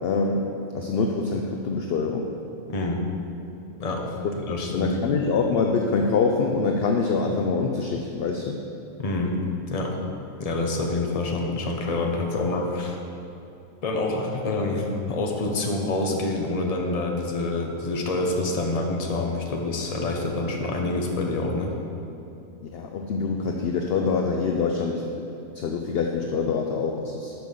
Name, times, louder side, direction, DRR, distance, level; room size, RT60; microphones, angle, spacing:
voice 1, 0.0-2.3 4.7-8.6 22.7-25.2 25.5-27.3, left 4 dB, 65° left, 2 dB, 0.6 m, -25 dB
voice 2, 2.7-3.1 3.8-4.2 4.5-5.0 9.0-10.0 10.4-13.0 13.8-21.8, left 2 dB, 35° left, 1 dB, 0.7 m, -27 dB
6.0 x 5.3 x 6.3 m, 2.7 s
omnidirectional pair, 1.5 m